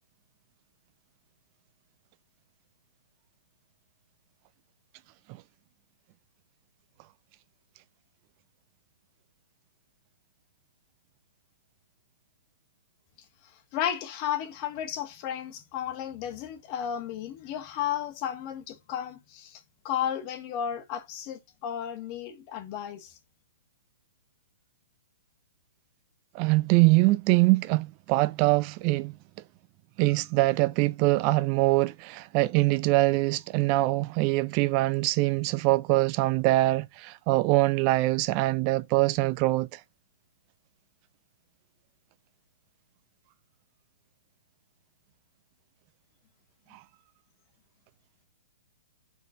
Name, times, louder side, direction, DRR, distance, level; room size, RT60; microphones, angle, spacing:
voice 1, 13.7-23.2, left 9 dB, 35° left, 1.4 m, -33 dB
voice 2, 26.3-29.1 30.0-39.8 46.7-46.8, right 20 dB, 35° right, 0.4 m, -23 dB
5.1 x 4.6 x 6.2 m
hypercardioid pair, 145°, 0 cm